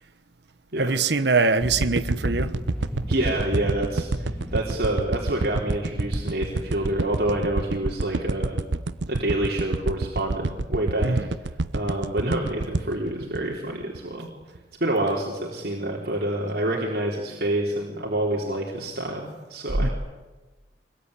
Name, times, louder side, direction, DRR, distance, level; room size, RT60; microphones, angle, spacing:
voice 1, 0.8-2.6 11.0-11.3 19.8-19.9, right 3 dB, 75° right, 1.3 m, -23 dB
sound 1, 1.6-13.1, equal, 5° left, 1.9 m, -38 dB
sound 2, 1.8-14.1 14.5-14.6, right 2 dB, 90° right, 0.8 m, -28 dB
voice 2, 3.1-8.6 9.1-11.2 11.7-14.3 14.8-19.9, right 1 dB, 55° right, 3.7 m, -27 dB
25.0 x 22.0 x 9.9 m
head